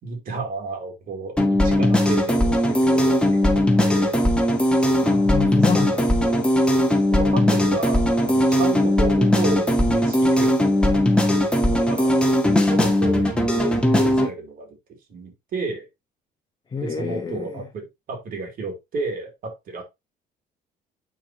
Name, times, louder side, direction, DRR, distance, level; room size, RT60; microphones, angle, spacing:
voice 1, 0.0-4.1 6.2-6.5 7.1-10.9 11.6-12.3 12.7-14.7 15.1-15.9 16.8-19.8, right 3 dB, 55° right, 4.1 m, -32 dB
sound 1, 1.4-14.3, left 1 dB, 5° left, 2.2 m, -19 dB
voice 2, 5.0-6.0 7.4-7.5 16.7-17.7, left 6 dB, 25° left, 1.4 m, -28 dB
8.8 x 5.9 x 3.2 m
cardioid pair, 110°, 17 cm